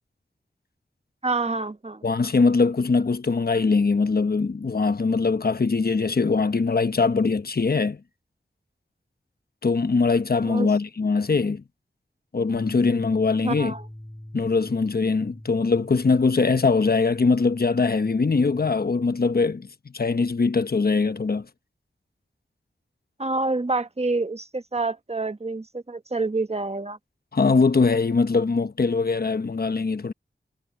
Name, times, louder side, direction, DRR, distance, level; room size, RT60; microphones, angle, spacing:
voice 1, 1.2-2.0 10.4-10.7 13.4-13.9 23.2-27.0, right 3 dB, 35° right, 1.3 m, -27 dB
voice 2, 2.0-8.0 9.6-11.6 12.3-13.7 14.3-19.7 19.9-21.5 27.3-30.1, left 4 dB, 55° left, 1.1 m, -22 dB
sound 1, 12.5-18.8, left 1 dB, 10° left, 6.4 m, -43 dB
cardioid pair, 45°, 19 cm